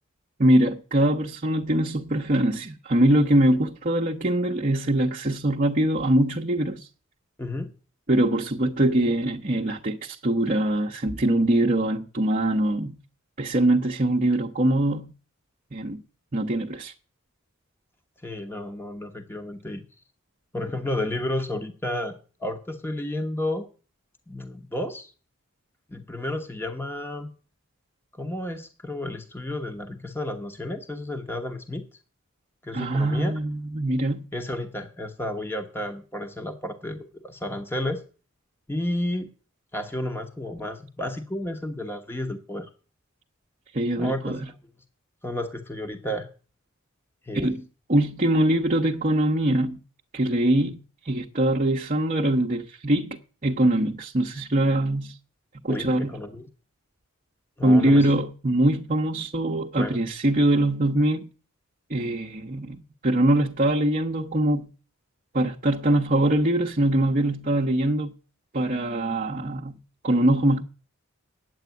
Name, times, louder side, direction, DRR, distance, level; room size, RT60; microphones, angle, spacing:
voice 1, 0.4-6.9 8.1-13.0 13.4-15.1 15.7-16.0 16.3-16.9 32.7-34.2 43.7-44.4 47.3-47.6 47.9-49.8 50.1-55.1 55.6-56.2 57.6-61.3 61.9-64.7 65.3-68.1 68.5-69.8 70.0-70.6, right 1 dB, 40° right, 0.8 m, -23 dB
voice 2, 7.4-7.7 18.2-19.8 20.5-22.1 22.4-23.7 24.3-25.1 25.9-27.3 28.2-31.8 32.6-33.4 34.3-38.0 38.7-39.3 39.7-42.7 44.0-44.4 45.2-46.3 47.2-47.6 55.7-56.5 57.6-58.1 59.7-60.0, left 1 dB, 10° left, 1.0 m, -32 dB
9.3 x 8.0 x 9.2 m
head